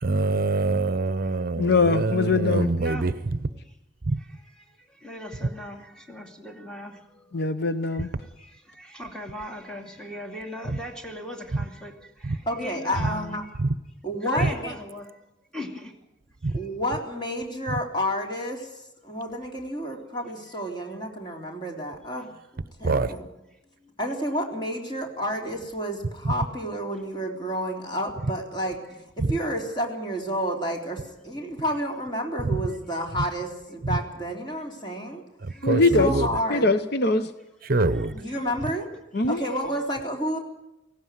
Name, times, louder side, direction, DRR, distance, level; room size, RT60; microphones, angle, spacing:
voice 1, 0.0-3.4 4.0-4.2 10.7-10.8 11.5-11.6 12.2-12.4 13.0-13.1 13.6-13.7 14.4-14.5 16.4-16.6 22.8-23.1 26.2-26.3 29.2-29.3 32.5-32.6 33.8-34.0 35.4-36.3 37.6-38.2, right 3 dB, 45° right, 14 dB, 0.8 m, -25 dB
voice 2, 1.6-2.7 7.3-8.1 35.6-36.1 36.5-37.3 39.1-39.4, left 3 dB, 55° left, 11 dB, 0.8 m, -22 dB
voice 3, 4.5-7.4 8.0-13.2 14.2-16.0 23.8-23.9 35.5-35.8 37.6-38.5 39.4-39.6, left 1 dB, 5° left, 3 dB, 2.5 m, -39 dB
voice 4, 12.5-13.4 14.0-14.8 16.5-23.2 24.0-28.8 29.2-35.2 36.0-36.8 38.1-38.9 39.3-40.4, equal, 25° left, 1 dB, 3.7 m, -30 dB
18.0 x 16.5 x 9.3 m, 0.93 s
head